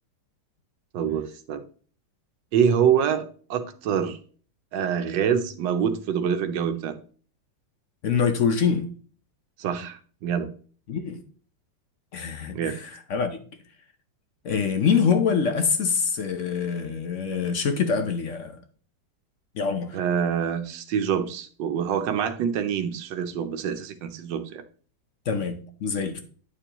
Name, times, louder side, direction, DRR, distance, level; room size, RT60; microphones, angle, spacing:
voice 1, 0.9-1.6 2.5-3.2 3.5-4.2 4.7-7.0 9.6-10.5 12.5-12.8 19.9-24.6, right 8 dB, 90° right, 1.4 m, -25 dB
voice 2, 8.0-8.9 10.9-11.2 12.1-13.4 14.4-18.6 19.5-20.0 25.3-26.2, left 6 dB, 55° left, 0.9 m, -25 dB
9.6 x 6.8 x 2.9 m
omnidirectional pair, 1.9 m